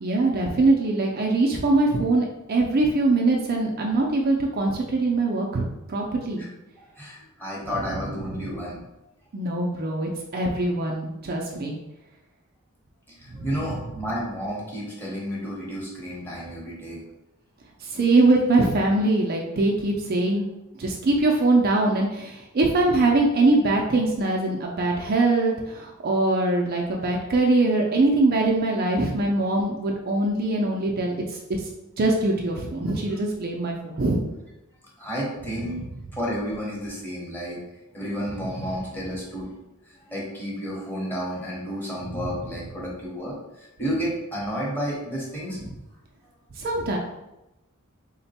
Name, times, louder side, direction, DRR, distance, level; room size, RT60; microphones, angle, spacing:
voice 1, 0.0-6.4 7.7-8.5 9.3-11.8 13.4-13.7 17.8-20.5 20.8-31.7 32.0-34.2 35.6-35.8 38.4-38.5 42.0-42.5 45.6-45.7 46.6-47.0, right 2 dB, 45° right, 0 dB, 0.4 m, -23 dB
voice 2, 6.8-8.8 13.4-17.0 35.0-35.8 36.1-37.6 37.9-39.5 40.1-43.3 43.8-45.6, equal, 10° left, -5 dB, 1.1 m, -31 dB
3.7 x 2.2 x 4.1 m, 0.95 s
head